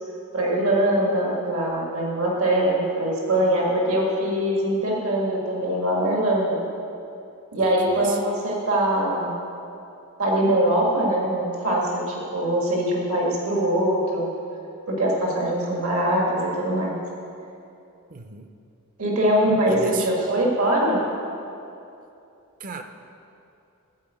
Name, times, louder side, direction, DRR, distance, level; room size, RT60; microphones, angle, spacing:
voice 1, 0.3-6.6 7.5-9.4 10.2-14.3 14.9-17.0 19.0-21.0, right 1 dB, 75° right, -3 dB, 1.8 m, -22 dB
voice 2, 18.1-18.5 19.7-20.3 22.6-22.8, right 5 dB, 40° right, 6 dB, 0.6 m, -34 dB
12.5 x 4.5 x 7.8 m, 2.7 s
head